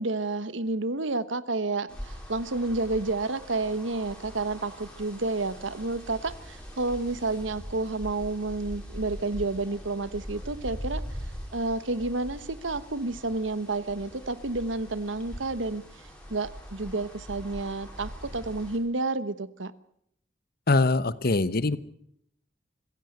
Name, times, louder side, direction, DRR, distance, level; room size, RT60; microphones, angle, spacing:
voice 1, 0.0-11.0 11.5-15.8 16.3-19.7, right 3 dB, 80° right, 14 dB, 1.2 m, -30 dB
sound 1, 1.9-18.8, equal, 5° left, 5.9 m, -42 dB
voice 2, 20.7-21.8, left 2 dB, 50° left, 16 dB, 1.1 m, -23 dB
25.0 x 15.5 x 8.0 m, 0.71 s
head